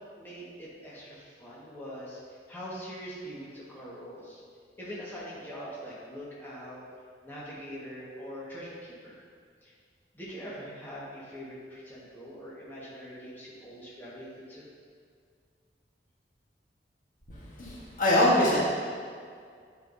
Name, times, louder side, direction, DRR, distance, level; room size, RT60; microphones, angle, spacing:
voice 1, 0.2-2.2 2.5-4.4 4.8-6.8 7.2-9.2 9.6-9.7 10.1-14.7, equal, 10° left, -8 dB, 1.5 m, -43 dB
voice 2, 17.3-18.6, left 1 dB, 50° left, -6 dB, 1.3 m, -24 dB
9.8 x 5.8 x 2.7 m, 2.1 s
head